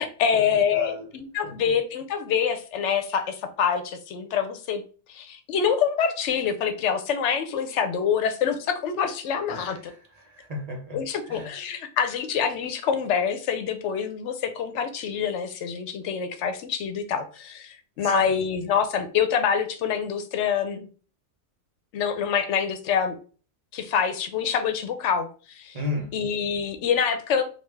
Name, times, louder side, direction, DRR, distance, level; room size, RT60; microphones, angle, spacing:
voice 1, 0.0-4.8 5.1-9.9 10.9-20.9 21.9-23.1 23.7-25.8 26.1-27.4, left 7 dB, 75° left, 9 dB, 0.9 m, -26 dB
voice 2, 0.7-1.1 1.4-1.6 9.5-11.5 18.0-18.4 25.7-26.2, left 3 dB, 40° right, 0 dB, 0.7 m, -35 dB
3.4 x 2.3 x 3.2 m, 0.39 s
omnidirectional pair, 1.2 m